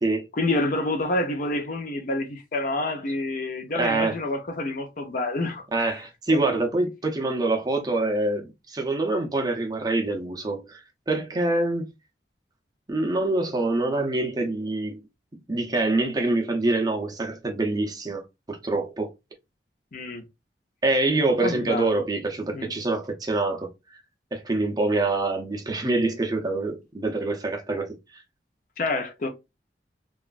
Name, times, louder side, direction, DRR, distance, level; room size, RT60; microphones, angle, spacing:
voice 1, 0.3-6.0 6.3-6.6 19.9-20.2 21.4-22.0 22.5-22.7 28.8-29.3, left 2 dB, 50° left, 0.6 m, -28 dB
voice 2, 3.8-4.2 5.7-10.8 11.1-11.9 12.9-15.0 15.5-19.1 20.8-23.7 24.3-28.2, right 2 dB, 20° right, 0.5 m, -25 dB
3.0 x 2.3 x 2.4 m
head